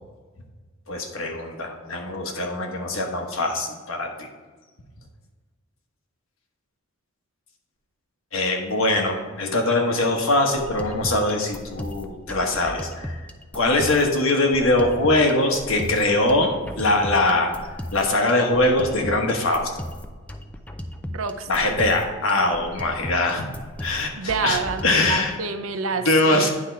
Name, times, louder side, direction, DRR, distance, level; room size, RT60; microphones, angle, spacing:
voice 1, 0.9-4.3 8.3-13.2 13.5-17.5 17.9-19.7 21.5-23.5 23.8-25.3 26.0-26.5, left 2 dB, 80° left, 2 dB, 1.2 m, -22 dB
sound 1, 10.4-25.2, equal, 5° left, 0.4 m, -36 dB
voice 2, 21.1-21.7 24.1-26.5, right 5 dB, 80° right, 8 dB, 0.6 m, -28 dB
9.8 x 3.7 x 4.5 m, 1.4 s
head